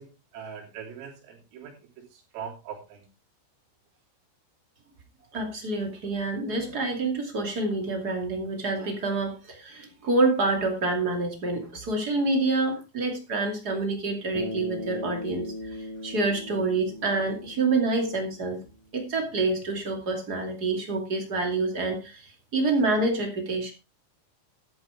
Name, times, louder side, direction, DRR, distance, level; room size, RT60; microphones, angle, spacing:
voice 1, 0.0-3.1, right 7 dB, 85° right, -1 dB, 6.0 m, -42 dB
voice 2, 5.3-18.6 18.9-23.7, right 3 dB, 35° right, 3 dB, 1.6 m, -27 dB
Bass guitar, 14.3-18.7, left 1 dB, 65° left, 5.2 m, -38 dB
13.0 x 10.5 x 3.5 m, 0.28 s
omnidirectional pair, 5.9 m